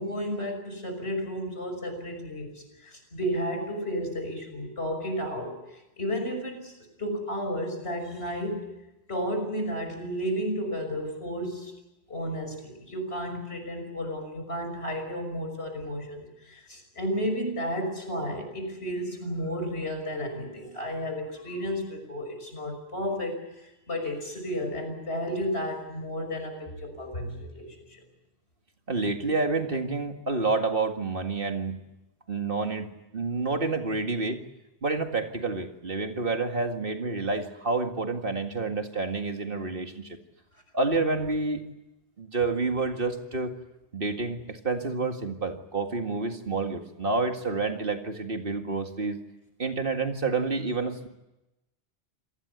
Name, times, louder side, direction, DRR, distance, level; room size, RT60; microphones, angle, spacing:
voice 1, 0.0-6.7 7.0-8.7 9.1-11.7 12.1-28.0, equal, 75° left, 6 dB, 6.2 m, -32 dB
voice 2, 28.9-31.8 32.3-34.4 34.8-40.2 40.7-41.6 42.2-43.5 43.9-49.2 49.6-51.1, right 3 dB, 55° right, 5 dB, 2.2 m, -29 dB
27.0 x 18.5 x 8.1 m, 0.95 s
omnidirectional pair, 1.1 m